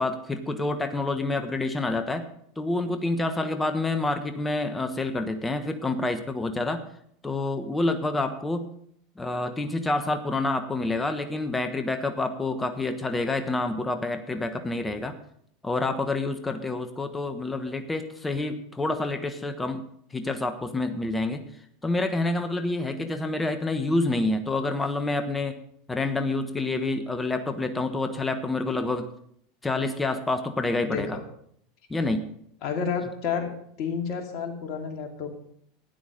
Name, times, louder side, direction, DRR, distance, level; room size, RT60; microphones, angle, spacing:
voice 1, 0.0-2.3 2.6-6.8 7.2-8.7 9.2-15.1 15.6-19.8 20.1-21.4 21.8-25.6 25.9-29.1 29.6-31.2 31.9-32.3, left 2 dB, 15° left, 8 dB, 1.2 m, -28 dB
voice 2, 30.8-31.2 32.6-33.5 33.8-35.3, left 6 dB, 50° left, 3 dB, 2.7 m, -30 dB
13.0 x 9.5 x 5.2 m, 0.68 s
hypercardioid pair, 85°, 0 cm